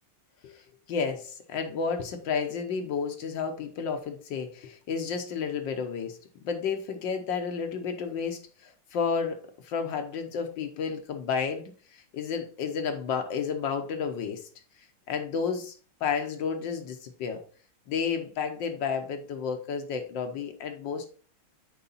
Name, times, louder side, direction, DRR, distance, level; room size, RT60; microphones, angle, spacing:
voice 1, 0.9-6.2 6.4-14.4 15.1-15.7 16.0-17.4 17.9-21.1, left 6 dB, 70° left, 6 dB, 1.6 m, -31 dB
6.9 x 4.7 x 4.0 m, 0.40 s
omnidirectional pair, 2.2 m